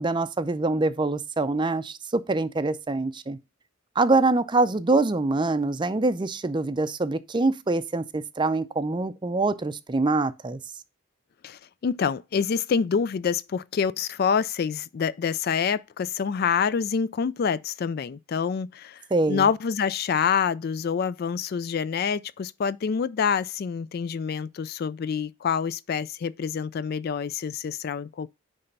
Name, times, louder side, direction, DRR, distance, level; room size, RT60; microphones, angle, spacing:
voice 1, 0.0-3.4 4.0-10.6 19.1-19.5, right 3 dB, 25° right, 0.5 m, -24 dB
voice 2, 11.4-28.3, left 6 dB, 50° left, 0.3 m, -27 dB
9.8 x 3.3 x 5.3 m
head